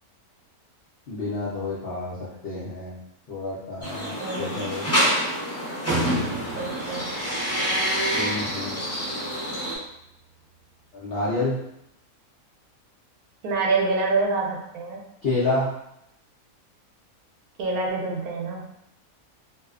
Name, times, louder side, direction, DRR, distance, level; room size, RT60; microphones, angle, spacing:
voice 1, 1.1-2.1 2.4-3.0 3.3-4.8 8.1-8.8 10.9-11.6 15.2-15.7, left 2 dB, 65° left, -8 dB, 0.5 m, -28 dB
sound 1, 3.8-9.8, equal, 20° left, 0.4 m, -27 dB
voice 2, 4.2-4.6 6.6-7.1 13.4-15.0 17.6-18.7, right 3 dB, 75° right, -1 dB, 1.0 m, -26 dB
sound 2, 5.9-10.6, right 2 dB, 55° right, 0.7 m, -36 dB
2.7 x 2.0 x 2.4 m, 0.79 s
omnidirectional pair, 1.6 m